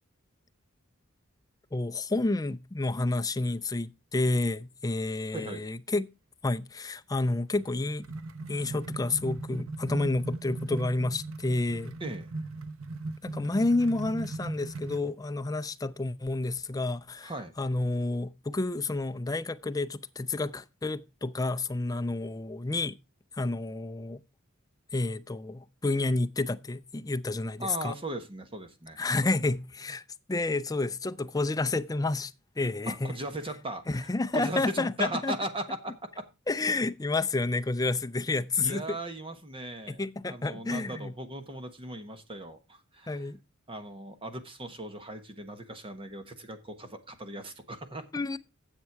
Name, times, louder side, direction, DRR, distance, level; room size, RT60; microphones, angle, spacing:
voice 1, 1.7-6.1 6.4-8.1 8.5-12.0 13.2-17.3 17.6-23.0 23.4-24.2 24.9-27.9 29.0-33.2 33.9-35.4 36.5-39.0 39.9-41.1 43.1-43.4 48.1-48.4, left 2 dB, 20° left, 0.5 m, -30 dB
voice 2, 5.3-5.6 12.0-12.3 17.2-17.5 27.6-29.0 32.9-36.2 38.6-43.3 43.7-48.1, right 1 dB, 25° right, 1.2 m, -38 dB
sound 1, 7.6-15.1, right 2 dB, 80° right, 0.8 m, -38 dB
10.0 x 7.6 x 4.6 m
head